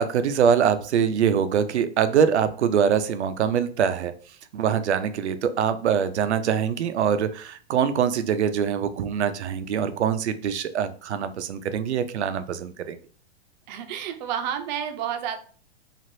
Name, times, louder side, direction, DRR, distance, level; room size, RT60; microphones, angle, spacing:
voice 1, 0.0-4.1 4.5-13.0, right 7 dB, 90° right, 11 dB, 0.5 m, -23 dB
voice 2, 13.7-15.4, right 9 dB, 40° right, 7 dB, 0.5 m, -30 dB
3.1 x 2.4 x 2.6 m, 0.42 s
hypercardioid pair, 120°, 33 cm